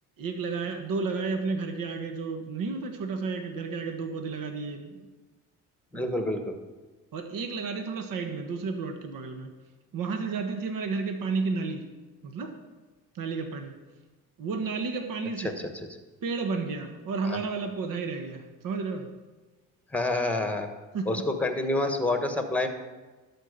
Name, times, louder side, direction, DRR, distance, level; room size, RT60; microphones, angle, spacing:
voice 1, 0.2-5.1 5.9-6.0 7.1-9.5 9.9-11.8 12.2-12.5 13.1-13.7 14.4-15.5 16.2-19.1 20.9-21.2, right 4 dB, 55° right, 5 dB, 1.3 m, -32 dB
voice 2, 5.9-6.6 15.4-15.5 17.2-17.4 19.9-20.7 21.1-22.7, left 2 dB, 5° left, 6 dB, 1.3 m, -27 dB
11.5 x 4.5 x 6.8 m, 1.3 s
supercardioid pair, 85°, 39 cm